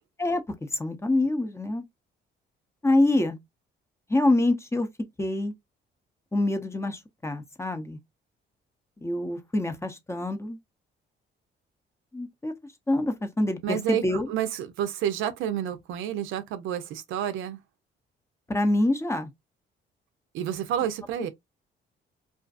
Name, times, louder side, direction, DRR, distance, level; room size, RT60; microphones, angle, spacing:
voice 1, 0.2-1.8 2.8-3.4 4.1-4.9 5.2-5.5 6.3-8.0 9.0-10.6 12.1-12.5 12.9-14.3 18.5-19.3, left 2 dB, 15° left, 0.6 m, -26 dB
voice 2, 13.6-17.6 20.3-21.3, right 10 dB, 90° right, 0.5 m, -29 dB
2.4 x 2.4 x 2.3 m
cardioid pair, 90°, 20 cm